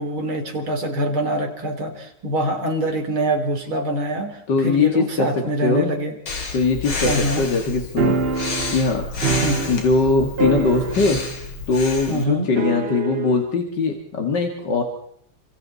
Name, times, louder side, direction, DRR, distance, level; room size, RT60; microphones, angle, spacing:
voice 1, 0.0-6.2 7.0-7.4 9.4-9.7 12.1-12.5, right 1 dB, 75° right, 4 dB, 4.3 m, -24 dB
voice 2, 4.5-5.9 6.5-8.2 8.7-9.0 9.7-11.2 11.7-14.8, left 4 dB, 55° left, 3 dB, 2.6 m, -21 dB
Breathing, 6.3-12.2, left 4 dB, 70° left, 3.8 m, -30 dB
sound 1, 8.0-10.1 10.4-11.4 11.6-11.7 12.6-13.4, right 5 dB, 40° right, 0.9 m, -24 dB
29.5 x 26.5 x 4.2 m, 0.69 s
omnidirectional pair, 2.3 m